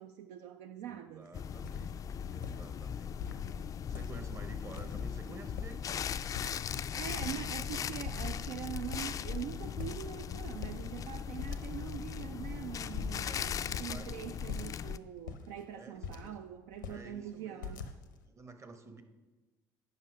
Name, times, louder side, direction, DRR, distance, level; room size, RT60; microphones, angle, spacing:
voice 1, 0.0-1.3 6.7-17.9, right 10 dB, 60° right, 8 dB, 0.4 m, -43 dB
voice 2, 0.8-3.4 3.9-6.1 13.2-13.5 13.9-14.1 15.7-16.4 16.9-17.8 18.3-19.0, right 3 dB, 30° right, 7 dB, 1.0 m, -51 dB
sound 1, 1.2-1.3 1.6-1.9 2.3-2.6 3.2-3.4 3.9-4.3 4.8-5.2 5.4-6.0 6.4-6.8 7.1-7.7 8.0-8.6 8.9-9.1 9.8-10.2 10.5-10.8 11.4-11.9 12.2-12.3 13.0-13.3 13.7-13.9 14.5-14.8 15.2-16.4 16.7-17.0 17.6-18.2, left 6 dB, 80° left, 0.6 m, -44 dB
sound 2, 1.3-15.0, left 7 dB, 35° left, 0.3 m, -38 dB
9.5 x 5.6 x 5.0 m, 1.2 s
figure-of-eight pair, 55°, 10 cm